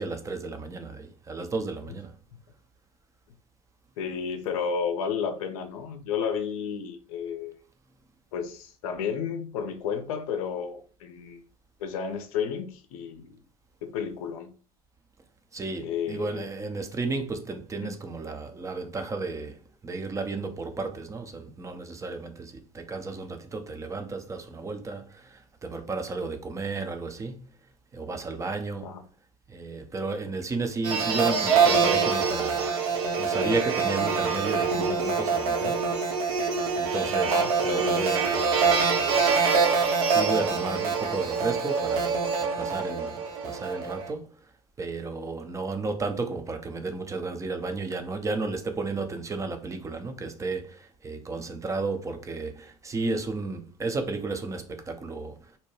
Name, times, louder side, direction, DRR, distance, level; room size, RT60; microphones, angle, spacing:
voice 1, 0.0-2.1 15.5-27.5 27.9-28.9 29.5-32.7 33.2-35.8 36.7-39.3 40.1-44.4 44.8-55.4, right 3 dB, 15° right, 0.5 m, -33 dB
voice 2, 4.0-7.6 8.3-11.4 11.8-13.4 13.8-14.5 15.8-16.5 17.8-17.9 28.8-29.0 37.3-37.5, left 7 dB, 65° left, 0.5 m, -32 dB
sound 1, 30.8-44.1, right 5 dB, 70° right, 0.7 m, -25 dB
2.7 x 2.1 x 3.1 m
hypercardioid pair, 70°, 19 cm